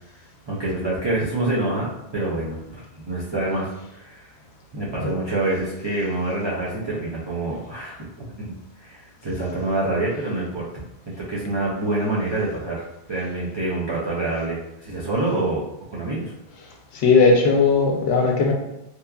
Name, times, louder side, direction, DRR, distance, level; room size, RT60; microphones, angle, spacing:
voice 1, 0.5-3.7 3.9-4.3 4.7-8.5 8.8-12.8 13.1-15.6 15.9-16.3, right 2 dB, 45° right, -7 dB, 0.3 m, -26 dB
voice 2, 16.9-18.5, left 4 dB, 75° left, 1 dB, 0.8 m, -17 dB
2.8 x 2.3 x 2.3 m, 0.85 s
omnidirectional pair, 1.1 m